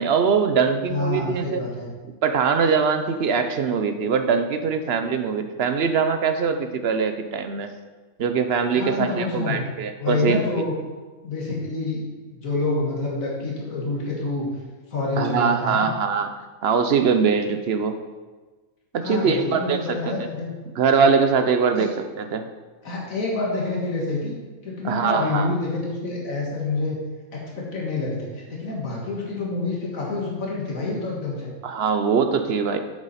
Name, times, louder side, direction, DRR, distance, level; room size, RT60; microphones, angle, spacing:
voice 1, 0.0-1.6 2.2-7.7 8.2-10.6 15.2-16.3 16.6-18.0 18.9-20.1 20.7-21.9 22.2-22.5 24.8-25.5 31.6-32.8, right 5 dB, 60° right, 8 dB, 0.8 m, -22 dB
voice 2, 0.9-1.9 8.7-9.7 10.0-10.7 11.2-12.0 12.3-14.5 14.9-15.9 19.0-20.5 21.8-21.9 22.8-24.4 24.6-27.0 27.3-31.5, left 3 dB, 75° left, -3 dB, 2.0 m, -27 dB
8.1 x 7.2 x 4.2 m, 1.3 s
omnidirectional pair, 1.4 m